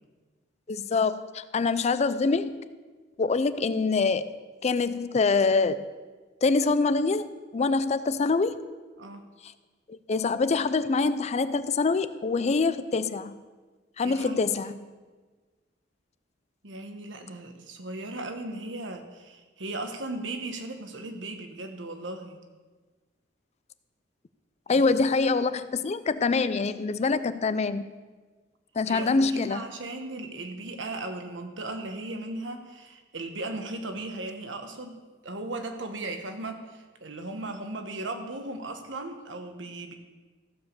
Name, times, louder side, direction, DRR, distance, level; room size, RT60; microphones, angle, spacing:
voice 1, 0.7-2.7 3.2-4.3 4.6-5.9 6.4-8.7 9.4-9.5 9.9-13.4 14.0-14.9 24.7-27.9 28.8-29.6, left 4 dB, 35° left, 13 dB, 0.4 m, -25 dB
voice 2, 14.0-14.7 16.6-22.4 24.7-24.9 28.9-35.0 35.2-39.9, right 2 dB, 85° right, 5 dB, 1.3 m, -37 dB
15.0 x 5.0 x 6.7 m, 1.4 s
head